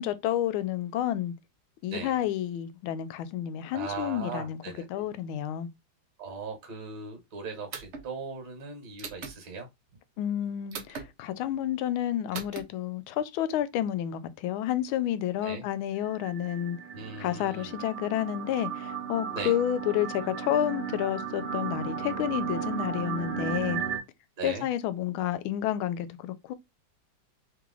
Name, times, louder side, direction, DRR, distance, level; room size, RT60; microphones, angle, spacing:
voice 1, 0.0-1.3 1.8-4.6 4.9-5.7 10.2-16.8 17.2-23.8 24.4-26.5, left 11 dB, 80° left, 1.4 m, -30 dB
voice 2, 1.9-2.2 3.7-5.0 6.2-9.7 15.4-15.6 16.9-17.8 19.3-19.6 24.4-24.7, right 4 dB, 55° right, 1.6 m, -39 dB
sound 1, 7.7-8.1 9.0-9.4 10.7-11.1 12.3-12.6, right 5 dB, 75° right, 0.6 m, -38 dB
sound 2, 16.1-24.0, right 7 dB, 40° right, 0.9 m, -35 dB
3.5 x 3.1 x 3.7 m
omnidirectional pair, 2.2 m